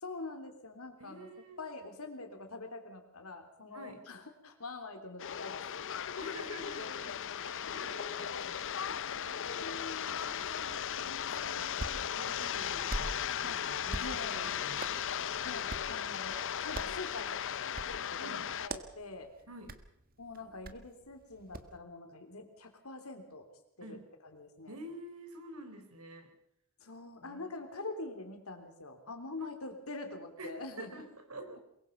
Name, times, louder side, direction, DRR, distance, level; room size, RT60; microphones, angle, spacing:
voice 1, 0.0-1.3 1.6-5.8 6.0-6.1 8.9-9.3 9.6-10.2 13.4-13.6 14.0-14.5 15.4-19.3 20.2-23.5 23.8-24.0 24.3-24.8 26.8-31.0, left 3 dB, 75° left, 6 dB, 3.5 m, -45 dB
voice 2, 1.0-1.6 3.7-4.0 6.2-8.5 9.2-15.2 18.2-18.5 19.5-19.8 23.8-24.1 24.7-26.3 27.2-27.5 29.4-29.5 30.4-31.6, right 1 dB, 80° right, 6 dB, 4.2 m, -49 dB
sound 1, 5.2-18.7, left 9 dB, 60° left, 0.7 m, -37 dB
Hands, 11.4-21.8, right 2 dB, 45° right, 1.6 m, -46 dB
23.0 x 22.0 x 5.4 m, 0.77 s
head